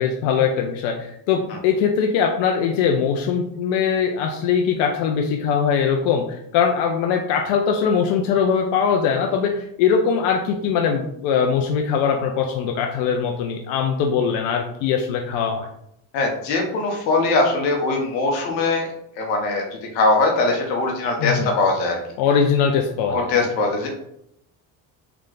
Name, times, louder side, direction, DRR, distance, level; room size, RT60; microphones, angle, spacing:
voice 1, 0.0-15.7 21.2-21.5 22.2-23.3, left 6 dB, 70° left, 2 dB, 0.6 m, -21 dB
voice 2, 16.1-18.9 19.2-19.7 19.9-22.0 23.1-23.9, left 3 dB, 90° left, 1 dB, 1.0 m, -21 dB
3.3 x 2.4 x 3.8 m, 0.76 s
hypercardioid pair, 65°, 49 cm